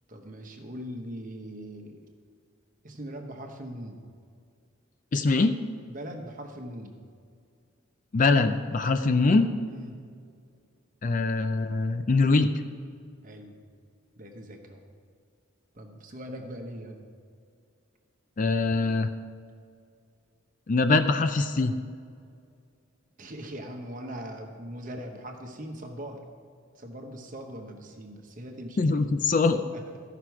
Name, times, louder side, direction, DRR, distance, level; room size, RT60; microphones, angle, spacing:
voice 1, 0.1-2.0 2.8-4.0 5.9-6.9 9.7-10.0 13.2-13.6 14.2-14.9 15.7-17.0 23.2-26.2 26.7-29.0 29.5-29.8, equal, 40° right, 3 dB, 1.0 m, -40 dB
voice 2, 5.1-5.6 8.1-9.5 11.0-12.5 18.4-19.1 20.7-21.8 28.8-29.6, left 3 dB, 40° left, 9 dB, 0.4 m, -23 dB
14.5 x 5.9 x 4.7 m, 2.3 s
head